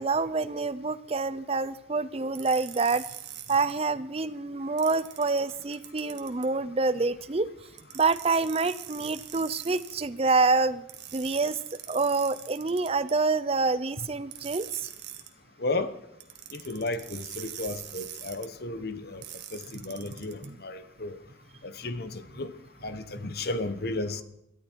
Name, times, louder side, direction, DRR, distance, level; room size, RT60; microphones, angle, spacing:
voice 1, 0.0-3.0 3.5-7.5 7.9-10.9 11.1-11.6 11.9-14.9 20.4-20.6, right 3 dB, 30° right, 0.6 m, -27 dB
sound 1, 2.3-3.7 4.8-6.5 7.8-10.0 10.9-13.1 14.3-15.3 16.2-18.5 19.2-20.5, right 12 dB, 65° right, 1.7 m, -43 dB
voice 2, 15.6-15.9 16.5-19.2 19.5-21.2 21.6-22.5 22.8-24.2, left 2 dB, 55° left, 1.1 m, -33 dB
23.0 x 13.5 x 4.6 m
head